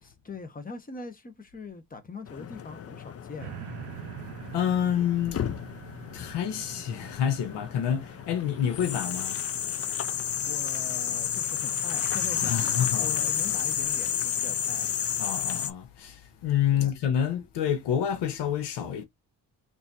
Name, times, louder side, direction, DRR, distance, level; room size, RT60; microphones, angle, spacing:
voice 1, 0.0-3.6 10.4-14.9 16.7-17.0, left 3 dB, 20° left, 1.1 m, -42 dB
sound 1, 2.3-15.7, left 9 dB, 35° left, 0.5 m, -31 dB
sound 2, 3.4-10.8 11.3-11.4, right 17 dB, 80° right, 0.5 m, -46 dB
voice 2, 4.5-5.5 6.1-9.4 12.4-13.1 15.2-19.0, left 9 dB, 80° left, 0.9 m, -28 dB
4.2 x 2.9 x 2.5 m
cardioid pair, 75°, 41 cm